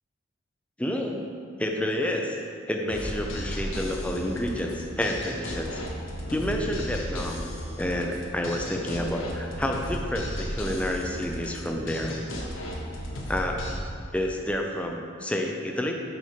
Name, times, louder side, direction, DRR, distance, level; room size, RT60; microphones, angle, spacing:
voice 1, 0.8-1.2 1.6-5.8 6.3-7.5 7.8-12.1 13.3-13.6 14.1-15.9, left 1 dB, 5° left, 1 dB, 0.4 m, -29 dB
sound 1, 2.9-13.8, equal, 75° left, 1.0 m, -35 dB
6.4 x 4.2 x 5.1 m, 2.3 s
head